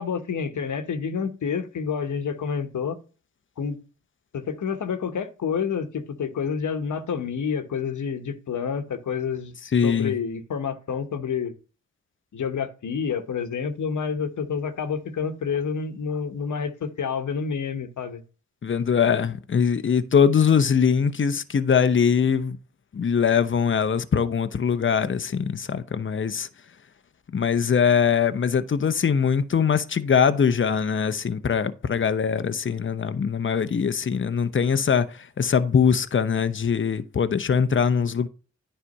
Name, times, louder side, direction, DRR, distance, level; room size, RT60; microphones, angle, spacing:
voice 1, 0.0-3.0 3.6-3.8 4.3-9.5 9.8-11.5 12.3-18.2, left 6 dB, 65° left, 1.2 m, -28 dB
voice 2, 9.7-10.1 18.6-22.6 22.9-26.5 27.3-38.3, left 7 dB, 40° left, 0.8 m, -22 dB
9.8 x 3.4 x 5.4 m
supercardioid pair, 40°, 32 cm